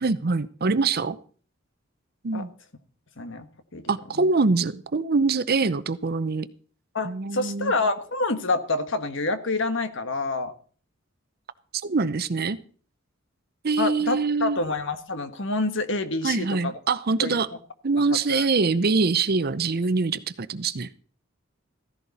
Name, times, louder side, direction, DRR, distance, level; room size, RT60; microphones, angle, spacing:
voice 1, 0.0-1.2 2.2-2.5 3.9-6.5 7.0-7.7 11.8-12.6 13.6-14.6 16.2-17.5 17.8-20.9, right 4 dB, 50° right, 14 dB, 0.7 m, -24 dB
voice 2, 3.2-3.5 3.7-3.8 6.9-10.5 13.8-16.7 17.2-17.4 18.0-18.5, left 3 dB, 65° left, 9 dB, 1.5 m, -27 dB
15.0 x 15.0 x 4.2 m, 0.43 s
head